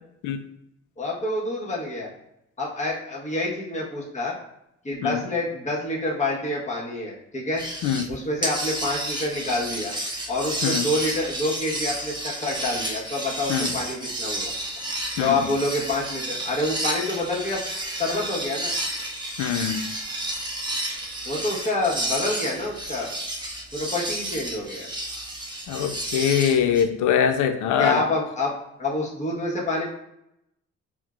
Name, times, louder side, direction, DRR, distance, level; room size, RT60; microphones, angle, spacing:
voice 1, 1.0-2.1 2.6-4.3 4.8-7.6 8.1-9.9 10.3-14.5 15.2-17.6 18.0-18.7 21.2-23.1 23.7-24.9 27.8-28.5 28.8-29.8, left 2 dB, 25° left, -4 dB, 1.1 m, -27 dB
sound 1, 7.6-8.1 8.4-26.8, right 1 dB, 15° right, 0.6 m, -31 dB
voice 2, 19.4-19.8 25.7-28.0, left 8 dB, 80° left, 7 dB, 0.5 m, -23 dB
4.4 x 2.1 x 2.3 m, 0.82 s
cardioid pair, 90°, 30 cm